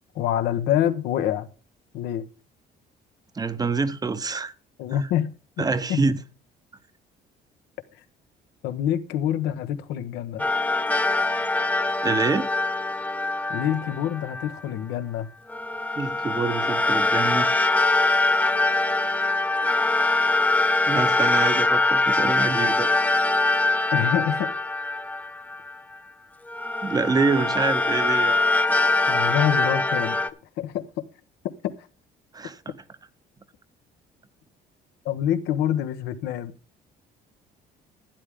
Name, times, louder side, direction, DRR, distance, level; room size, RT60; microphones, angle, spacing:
voice 1, 0.1-1.5 1.9-2.2 4.8-5.3 5.6-6.0 8.6-10.4 13.5-15.3 23.9-24.5 29.1-30.2 30.6-30.9 35.0-36.5, left 10 dB, 85° left, 1.1 m, -26 dB
voice 2, 3.3-4.5 5.6-6.2 12.0-12.5 16.0-17.5 20.9-22.9 26.8-28.4 32.3-32.6, right 4 dB, 20° right, 0.8 m, -26 dB
sound 1, 10.4-14.6 15.5-25.9 26.5-30.3, left 2 dB, 10° left, 0.8 m, -23 dB
12.0 x 9.8 x 3.6 m
cardioid pair, 110°, 17 cm